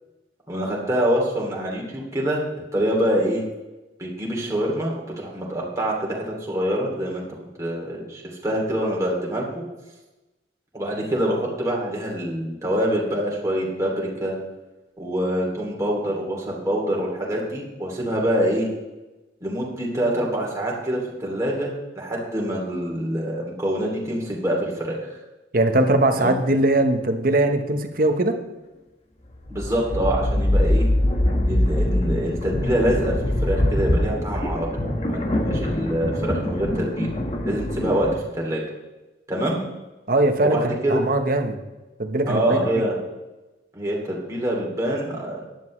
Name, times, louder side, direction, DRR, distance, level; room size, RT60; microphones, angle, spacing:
voice 1, 0.5-3.4 4.0-7.3 7.6-9.6 10.7-14.4 15.0-18.7 19.4-25.2 26.2-26.3 29.5-30.9 31.4-37.1 37.4-38.6 39.3-39.6 40.4-41.0 42.3-43.0 43.7-45.4, right 1 dB, 15° right, -3 dB, 2.8 m, -25 dB
voice 2, 25.5-28.3 40.1-41.6 42.0-42.8, right 2 dB, 50° right, 6 dB, 1.1 m, -21 dB
sound 1, 29.3-38.2, left 1 dB, 35° left, 1.3 m, -23 dB
14.5 x 10.5 x 3.2 m, 1.1 s
head